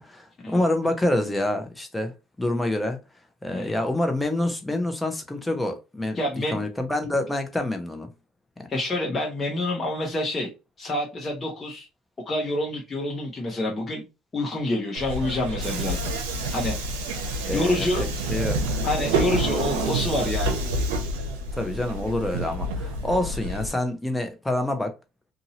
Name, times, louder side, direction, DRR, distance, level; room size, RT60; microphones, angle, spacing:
voice 1, 0.0-2.1 2.4-3.0 3.4-6.2 6.5-8.1 17.4-17.9 18.3-18.8 21.6-24.9, left 1 dB, 10° left, 0.9 m, -27 dB
voice 2, 6.1-6.7 8.7-10.5 10.8-11.9 12.2-14.0 14.3-16.1 16.5-16.7 17.5-18.0 18.8-20.6, left 1 dB, 30° left, 1.0 m, -27 dB
Subway metro underground, 14.9-23.7, right 1 dB, 90° right, 0.6 m, -28 dB
2.7 x 2.6 x 2.9 m
supercardioid pair, 75°, 0 cm